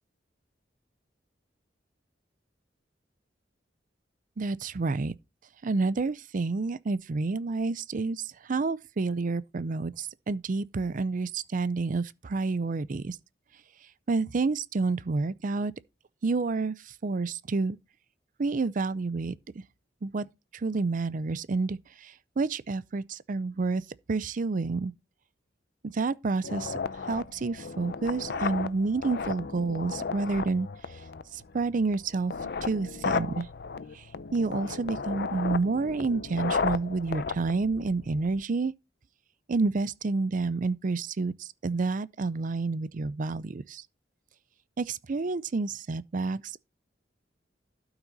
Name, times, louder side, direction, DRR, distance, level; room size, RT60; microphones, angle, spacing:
voice 1, 4.4-5.1 5.6-13.2 14.1-15.7 16.2-17.8 18.4-19.3 20.0-20.3 20.5-23.8 24.1-24.9 25.8-26.8 27.1-30.7 31.3-33.5 33.9-34.0 34.3-38.7 39.5-43.8 44.8-46.6, right 3 dB, 45° right, 0.5 m, -29 dB
sound 1, 26.4-38.4, left 5 dB, 60° left, 0.6 m, -34 dB
12.0 x 5.9 x 4.0 m
head